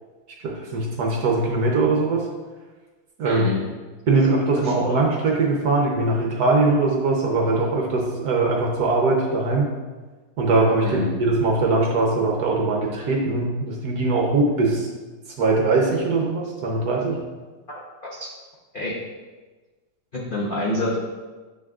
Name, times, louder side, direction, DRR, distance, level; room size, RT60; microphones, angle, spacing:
voice 1, 0.4-2.3 3.2-3.5 4.1-9.7 10.4-14.9 15.4-17.2, right 3 dB, 60° right, -1 dB, 1.1 m, -21 dB
voice 2, 3.2-3.6 4.6-5.0 10.8-11.1 17.7-17.8 18.1-18.3 18.7-19.0 20.1-21.0, left 1 dB, 60° left, -6 dB, 0.5 m, -27 dB
7.5 x 6.1 x 2.4 m, 1.3 s
omnidirectional pair, 2.2 m